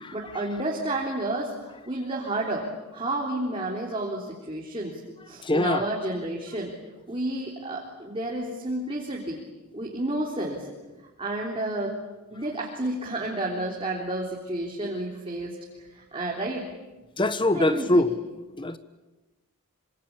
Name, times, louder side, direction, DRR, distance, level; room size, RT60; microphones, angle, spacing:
voice 1, 0.1-5.0 5.3-6.7 7.1-9.4 9.7-10.7 11.2-12.0 12.3-16.7 17.5-18.1, right 1 dB, 25° right, 3.6 m, -31 dB
voice 2, 5.4-5.8 17.2-18.2 18.6-18.8, left 1 dB, 20° left, 1.1 m, -23 dB
26.5 x 26.0 x 8.7 m
head